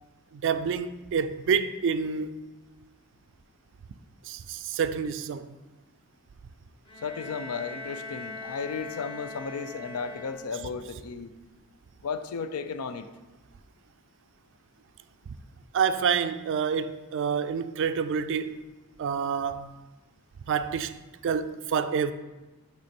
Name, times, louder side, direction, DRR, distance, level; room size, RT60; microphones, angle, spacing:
voice 1, 0.3-2.4 4.2-5.5 15.7-18.6 19.0-19.7 20.5-22.1, right 6 dB, 55° right, 0.3 m, -28 dB
Bowed string instrument, 6.9-10.8, left 2 dB, 25° left, 1.2 m, -41 dB
voice 2, 7.0-11.3 12.0-13.1, left 5 dB, 75° left, 0.4 m, -34 dB
8.2 x 3.1 x 4.3 m
head